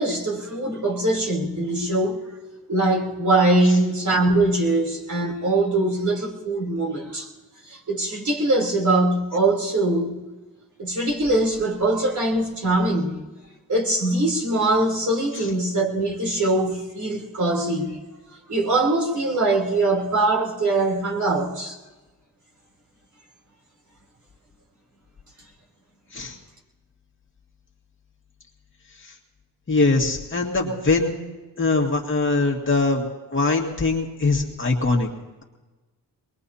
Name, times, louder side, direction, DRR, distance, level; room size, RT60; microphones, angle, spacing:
voice 1, 0.0-2.3 2.7-7.3 7.7-10.2 10.8-13.2 13.7-18.0 18.5-21.8, right 2 dB, 45° right, -2 dB, 3.6 m, -22 dB
voice 2, 29.7-31.1 31.6-35.1, left 3 dB, 30° left, -1 dB, 2.1 m, -22 dB
22.5 x 21.0 x 2.8 m, 1.2 s
cardioid pair, 80°, 41 cm